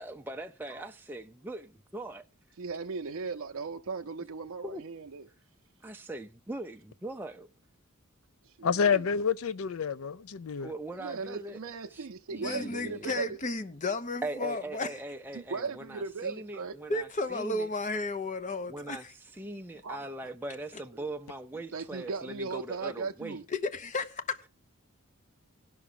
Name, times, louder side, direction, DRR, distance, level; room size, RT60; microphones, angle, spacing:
voice 1, 0.0-2.2 4.6-4.8 5.8-7.5 10.6-11.6 11.9-13.2 14.2-17.7 18.7-19.1 19.3-23.4, right 1 dB, 10° right, 0.4 m, -41 dB
voice 2, 2.6-5.3 8.6-9.0 11.0-13.2 15.3-16.8 19.8-20.0 21.7-23.4, right 4 dB, 75° right, 0.5 m, -37 dB
voice 3, 8.6-10.7, left 6 dB, 70° left, 0.4 m, -28 dB
voice 4, 12.4-14.9 16.9-19.1 23.5-24.4, left 2 dB, 35° left, 0.8 m, -33 dB
18.0 x 6.0 x 3.8 m
head